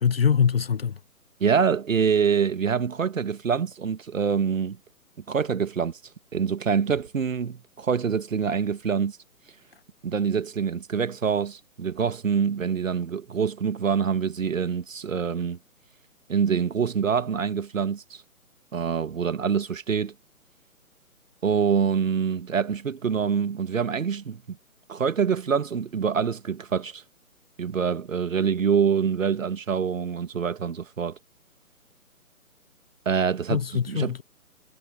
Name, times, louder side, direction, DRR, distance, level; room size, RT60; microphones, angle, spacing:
voice 1, 0.0-1.0 33.5-34.2, left 7 dB, 40° left, 0.7 m, -23 dB
voice 2, 1.4-4.8 5.3-6.0 6.3-9.2 10.0-15.6 16.3-18.2 18.7-20.1 21.4-24.6 24.9-27.0 27.6-31.2 33.0-34.1, right 6 dB, 60° right, 1.6 m, -25 dB
figure-of-eight pair, 145°, 44 cm